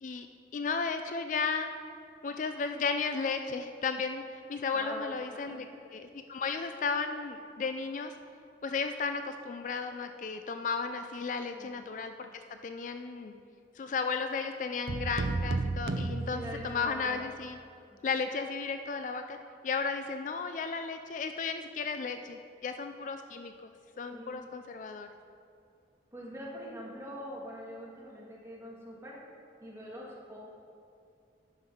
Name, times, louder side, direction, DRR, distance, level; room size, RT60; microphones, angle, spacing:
voice 1, 0.5-1.7 2.2-5.6 5.9-8.1 8.6-13.3 13.8-17.6 18.0-19.4 19.6-23.7 24.0-25.1, left 5 dB, 45° left, 8 dB, 0.3 m, -34 dB
voice 2, 4.7-5.6 11.5-11.8 16.3-17.2 17.9-18.0 24.1-24.5 26.1-29.2 29.6-30.4, equal, 15° right, -4 dB, 1.6 m, -44 dB
sound 1, 14.9-17.1, right 3 dB, 60° right, 0.5 m, -33 dB
10.0 x 5.3 x 6.1 m, 2.5 s
head